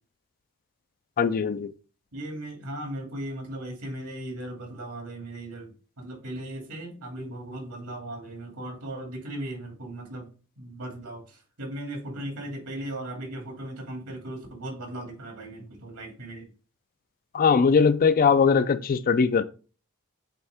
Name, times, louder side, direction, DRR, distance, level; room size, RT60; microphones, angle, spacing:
voice 1, 1.2-1.7 17.3-19.4, left 5 dB, 40° left, 0.4 m, -20 dB
voice 2, 2.1-10.3 10.6-16.5, right 1 dB, 85° right, 2.5 m, -37 dB
8.1 x 3.5 x 3.5 m
head